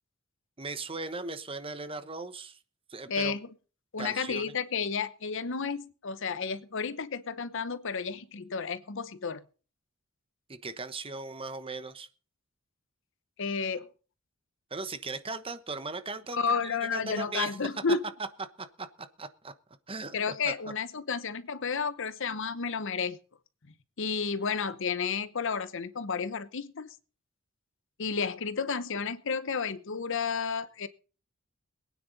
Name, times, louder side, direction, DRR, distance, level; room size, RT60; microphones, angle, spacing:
voice 1, 0.6-2.6 2.9-3.4 4.0-4.5 10.5-12.1 14.7-17.8 18.8-19.5 19.9-20.2 20.4-20.5, right 3 dB, 25° right, 11 dB, 1.1 m, -38 dB
voice 2, 3.1-3.5 3.9-9.4 13.4-13.9 16.3-18.0 20.1-23.2 24.0-26.9 28.0-30.9, left 5 dB, 65° left, 14 dB, 0.9 m, -32 dB
22.0 x 9.5 x 4.1 m, 0.38 s
head